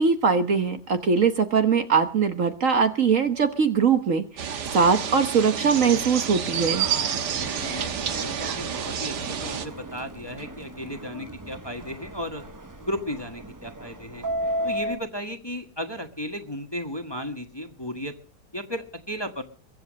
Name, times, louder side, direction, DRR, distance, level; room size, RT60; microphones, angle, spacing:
voice 1, 0.0-6.9, right 5 dB, 50° right, 8 dB, 1.4 m, -21 dB
sound 1, 4.4-9.7, right 8 dB, 70° right, 1.8 m, -29 dB
Subway metro underground, 6.6-15.0, right 1 dB, 20° right, 0.6 m, -35 dB
voice 2, 7.6-12.4 12.8-14.2 14.6-18.1 18.5-19.4, equal, 15° left, 6 dB, 1.4 m, -34 dB
23.0 x 7.9 x 6.4 m, 0.41 s
omnidirectional pair, 1.9 m